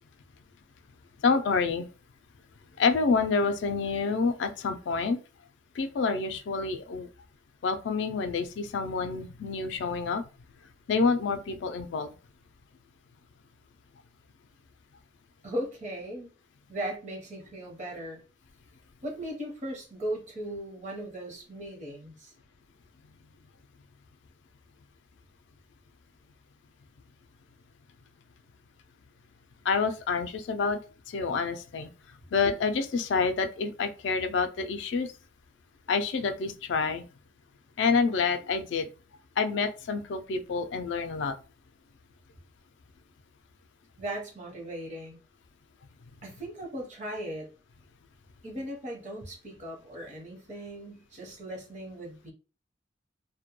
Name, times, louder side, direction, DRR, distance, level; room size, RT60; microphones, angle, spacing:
voice 1, 1.2-1.9 2.8-5.2 5.8-7.1 7.6-10.2 10.9-12.1 29.6-30.8 31.1-31.9 32.3-35.1 35.9-37.0 37.8-38.9 39.4-41.4, left 4 dB, 75° left, 8 dB, 0.4 m, -28 dB
voice 2, 15.4-16.3 16.7-18.2 19.0-22.3 44.0-45.2 46.2-47.5 48.4-52.3, right 1 dB, 40° right, -1 dB, 0.8 m, -38 dB
2.2 x 2.1 x 2.9 m, 0.34 s
head